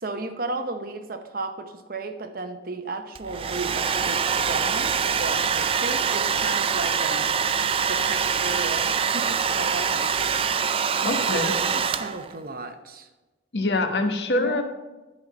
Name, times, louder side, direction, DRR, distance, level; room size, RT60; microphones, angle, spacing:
voice 1, 0.0-7.3 7.9-10.1 11.1-13.1 14.3-14.6, right 2 dB, 50° right, 8 dB, 0.8 m, -34 dB
Domestic sounds home sounds, 3.1-12.4, right 6 dB, 30° right, 0.3 m, -24 dB
voice 2, 11.0-11.5 13.5-14.6, left 2 dB, 65° left, 5 dB, 1.1 m, -24 dB
10.5 x 5.6 x 6.1 m, 1.1 s
head